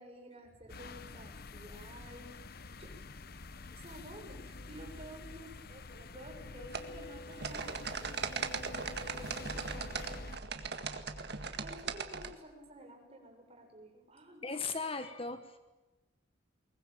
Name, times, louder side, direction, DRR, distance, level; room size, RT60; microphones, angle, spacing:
voice 1, 0.0-2.9 3.7-8.5 9.0-10.5 11.6-14.5, right 1 dB, 30° right, 1 dB, 6.8 m, -52 dB
sound 1, 0.7-10.4, left 3 dB, 55° left, 1.0 m, -47 dB
sound 2, 6.7-12.3, right 5 dB, 60° right, 1.9 m, -39 dB
voice 2, 14.4-15.6, left 4 dB, 30° left, 9 dB, 1.3 m, -37 dB
22.5 x 20.0 x 9.0 m, 1.1 s
head